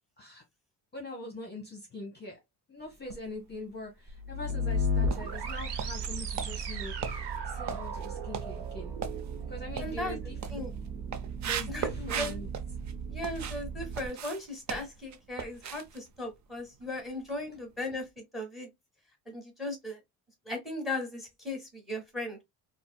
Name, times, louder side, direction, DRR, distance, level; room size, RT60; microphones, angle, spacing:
voice 1, 0.9-2.4 2.7-6.9 7.4-9.0 9.5-10.7 11.4-12.5 17.3-17.4, left 2 dB, 25° left, 1.0 m, -42 dB
sound 1, 2.9-3.7 4.1-13.6 13.9-17.1 17.3-17.6 18.0-18.1, right 7 dB, 45° right, 0.5 m, -40 dB
sound 2, 4.1-14.1, equal, 75° right, 0.7 m, -35 dB
voice 2, 9.8-10.2 10.5-10.7 11.7-12.4 13.1-18.7 19.3-20.0 20.4-22.4, left 1 dB, ahead, 1.2 m, -37 dB
4.1 x 2.0 x 2.2 m
cardioid pair, 140°, 40 cm